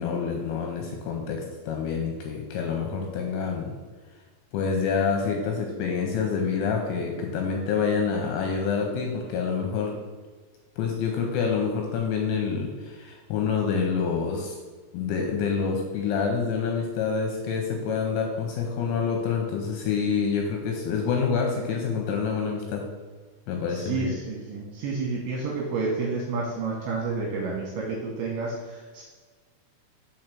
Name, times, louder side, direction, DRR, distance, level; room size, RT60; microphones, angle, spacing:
voice 1, 0.0-3.7 4.5-10.0 10.8-14.6 14.9-22.8 23.5-24.1, left 5 dB, 80° left, 1 dB, 2.8 m, -27 dB
voice 2, 23.7-29.0, right 4 dB, 75° right, -3 dB, 2.8 m, -30 dB
6.4 x 4.6 x 6.0 m, 1.4 s
omnidirectional pair, 5.8 m